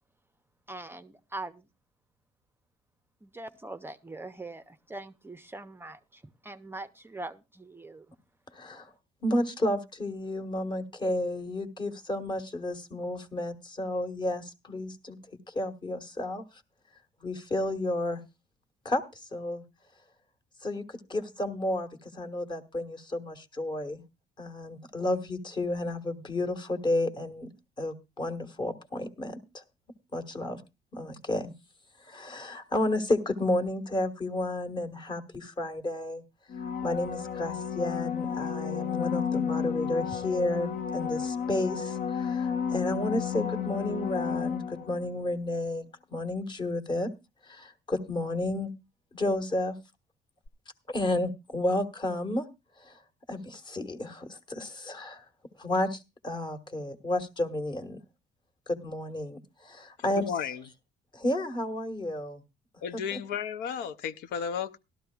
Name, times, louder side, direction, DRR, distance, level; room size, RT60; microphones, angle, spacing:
voice 1, 0.7-1.7 3.2-8.1, right 2 dB, 15° right, 10 dB, 0.5 m, -42 dB
voice 2, 8.5-8.9 9.2-15.2 15.5-16.6 17.2-18.2 18.8-19.6 20.6-24.0 24.4-27.5 27.8-29.6 30.1-30.6 30.9-31.5 32.0-36.2 36.8-45.8 46.1-47.1 47.4-48.7 49.1-49.7 50.9-52.4 52.8-53.0 53.3-55.2 55.6-58.0 58.7-60.3 61.1-62.4, left 1 dB, 25° left, 5 dB, 1.4 m, -32 dB
sound 1, 36.5-45.1 50.5-50.6, left 7 dB, 50° left, 0.6 m, -32 dB
voice 3, 60.0-60.6 62.8-64.8, left 7 dB, 85° left, 10 dB, 0.7 m, -34 dB
17.5 x 12.5 x 2.3 m, 0.26 s
cardioid pair, 110°, 17 cm